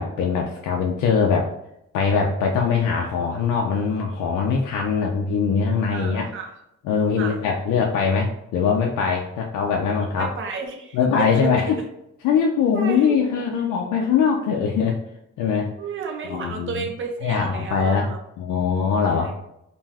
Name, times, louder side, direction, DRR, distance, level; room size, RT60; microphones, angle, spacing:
voice 1, 0.0-1.5 1.9-6.3 6.8-10.3 10.9-11.7 12.2-15.0 15.4-15.7 16.3-16.9 17.2-18.1 18.4-19.3, left 6 dB, 85° left, 0 dB, 0.5 m, -22 dB
voice 2, 5.9-6.5 7.2-7.4 10.2-11.5 12.7-13.1 15.8-18.2 19.2-19.3, right 5 dB, 40° right, 3 dB, 0.6 m, -32 dB
2.5 x 2.2 x 3.2 m, 0.82 s
cardioid pair, 90°, 30 cm